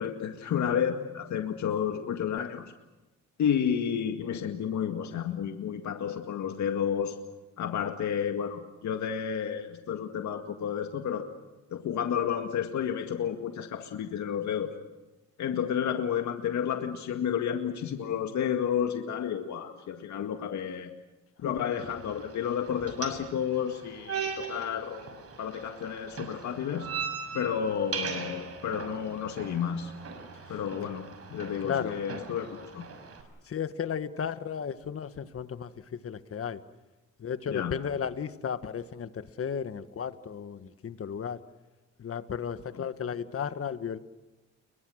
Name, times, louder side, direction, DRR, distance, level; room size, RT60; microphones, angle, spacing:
voice 1, 0.0-2.7 3.4-7.2 7.6-11.3 11.7-14.8 15.4-20.9 21.4-25.1 25.4-26.9 27.3-29.9 30.5-31.0 31.3-32.9 37.5-37.8 42.7-42.8, left 8 dB, 70° left, 5 dB, 2.0 m, -31 dB
sound 1, 21.7-33.2, right 6 dB, 50° right, 6.3 m, -40 dB
voice 2, 31.6-32.0 33.4-36.6 37.2-41.4 42.0-44.0, left 7 dB, 50° left, 11 dB, 1.6 m, -34 dB
30.0 x 23.0 x 6.5 m, 1.1 s
cardioid pair, 90°, 30 cm